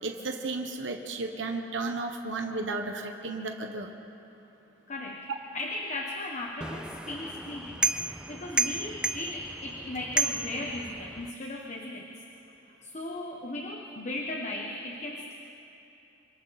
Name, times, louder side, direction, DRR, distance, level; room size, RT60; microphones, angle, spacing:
voice 1, 0.0-3.9, right 3 dB, 65° right, 3 dB, 1.3 m, -33 dB
voice 2, 4.9-5.3 5.5-7.8 8.3-12.1 12.8-15.3, left 2 dB, 35° left, 0 dB, 1.3 m, -36 dB
sound 1, 6.6-11.3, right 3 dB, 5° right, 0.5 m, -32 dB
26.5 x 25.5 x 4.3 m, 3.0 s
head